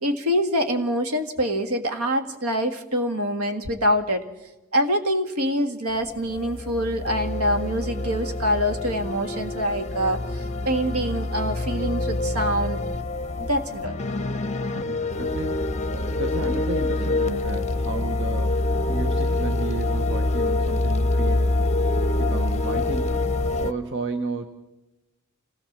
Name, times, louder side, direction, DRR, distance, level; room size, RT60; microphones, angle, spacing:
voice 1, 0.0-4.2 4.7-12.8 13.4-14.0, equal, 75° right, 7 dB, 1.9 m, -25 dB
sound 1, 5.9-23.7, left 2 dB, 30° left, 0.8 m, -26 dB
voice 2, 14.7-21.7 22.2-24.5, right 3 dB, 55° right, 7 dB, 1.1 m, -33 dB
26.0 x 17.0 x 7.3 m, 1.0 s
head